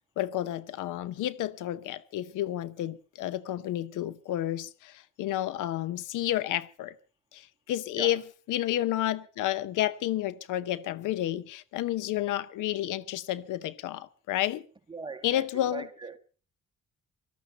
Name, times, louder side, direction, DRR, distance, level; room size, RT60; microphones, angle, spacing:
voice 1, 0.2-6.9 7.3-8.2 8.5-14.7 15.2-15.8, left 13 dB, 85° left, 0.9 m, -31 dB
voice 2, 14.9-16.2, right 3 dB, 15° right, 1.8 m, -40 dB
18.5 x 13.5 x 5.5 m
cardioid pair, 90°, 30 cm